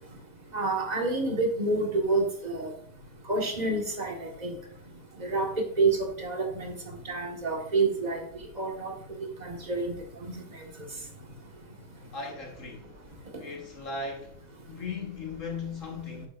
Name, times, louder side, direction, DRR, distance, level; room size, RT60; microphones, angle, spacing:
voice 1, 0.5-2.7 3.3-4.5 5.2-6.7 7.1-8.2 8.6-8.9 9.4-9.9, right 3 dB, 25° right, 1.4 m, -28 dB
voice 2, 12.1-13.0 13.4-14.4 14.7-16.3, left 4 dB, 45° left, 1.7 m, -37 dB
10.0 x 7.2 x 2.5 m
omnidirectional pair, 1.9 m